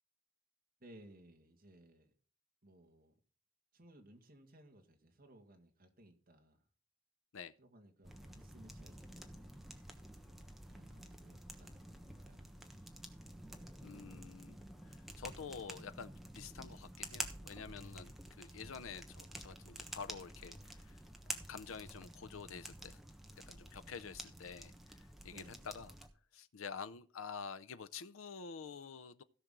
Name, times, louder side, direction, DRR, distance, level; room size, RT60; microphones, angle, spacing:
voice 1, 0.8-2.1 2.6-3.1 3.7-6.6 7.6-9.6 10.2-12.9 25.3-25.6, right 1 dB, 45° right, 2.0 m, -61 dB
sound 1, 8.0-26.1, right 1 dB, ahead, 1.1 m, -50 dB
voice 2, 13.8-21.0 21.5-23.0 23.5-25.9 26.3-29.2, left 6 dB, 85° left, 0.6 m, -49 dB
16.5 x 6.0 x 3.8 m
head